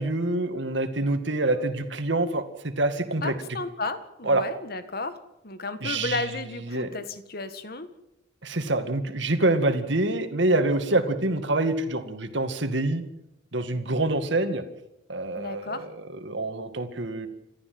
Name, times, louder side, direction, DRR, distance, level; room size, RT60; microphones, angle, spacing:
voice 1, 0.0-3.3 4.3-4.4 5.8-6.2 6.7-6.9 8.4-13.0 13.5-14.6 15.1-17.3, right 2 dB, 65° right, 8 dB, 2.2 m, -26 dB
voice 2, 3.2-5.2 5.4-7.9 15.4-15.9, left 3 dB, 50° left, 10 dB, 1.8 m, -33 dB
28.5 x 14.0 x 7.9 m, 0.87 s
head